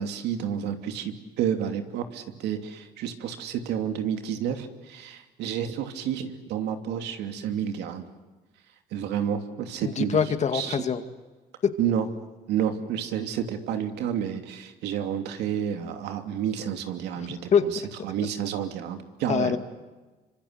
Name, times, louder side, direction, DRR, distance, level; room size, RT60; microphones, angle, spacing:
voice 1, 0.0-8.0 8.9-10.2 10.5-10.8 11.8-12.1 12.5-17.4 18.0-19.6, right 9 dB, 85° right, 6 dB, 2.9 m, -30 dB
voice 2, 9.8-11.0 11.6-11.7 17.2-17.6 19.3-19.6, left 7 dB, 45° left, 8 dB, 2.3 m, -24 dB
26.0 x 25.5 x 8.2 m, 1.2 s
cardioid pair, 110°, 17 cm